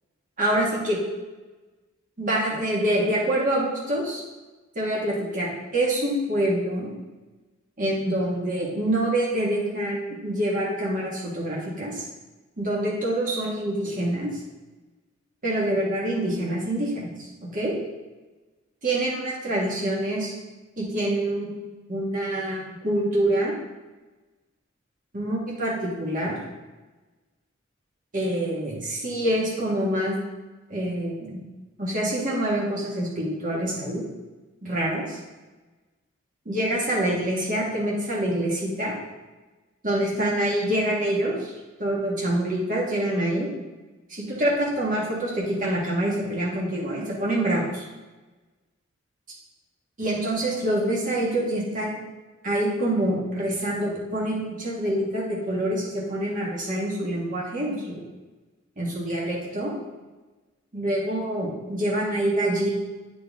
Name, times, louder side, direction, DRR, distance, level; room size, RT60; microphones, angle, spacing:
voice 1, 0.4-1.0 2.2-4.2 4.7-6.9 7.8-12.0 12.6-14.3 15.4-17.3 17.5-17.7 18.8-20.3 20.8-21.5 21.9-23.5 25.1-26.4 28.1-30.1 30.7-31.4 31.8-34.0 34.6-35.2 36.4-38.9 39.8-41.5 41.8-43.5 44.1-47.8 50.0-52.0 52.4-58.0 58.8-59.7 60.7-62.7, right 1 dB, 45° right, -4 dB, 1.6 m, -26 dB
9.0 x 4.4 x 3.5 m, 1.2 s
head